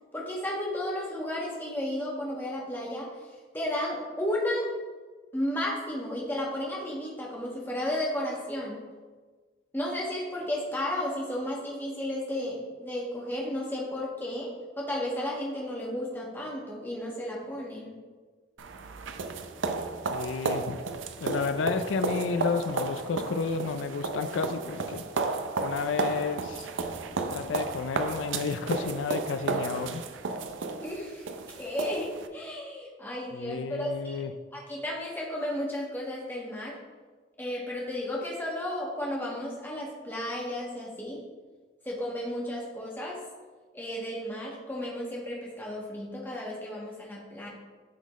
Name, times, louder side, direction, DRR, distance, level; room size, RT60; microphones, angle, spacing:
voice 1, 0.1-3.1 3.5-4.7 5.3-8.8 9.7-18.0 30.8-34.2 34.5-36.7 37.4-41.2 41.8-43.2 43.7-47.5, left 1 dB, 10° left, -4 dB, 1.4 m, -33 dB
sound 1, 18.6-32.3, right 4 dB, 85° right, 0.5 m, -33 dB
voice 2, 20.1-20.8 21.2-25.0 25.6-26.7 27.3-30.0 33.3-34.3, left 5 dB, 85° left, 9 dB, 0.4 m, -31 dB
12.0 x 4.0 x 3.1 m, 1.4 s
head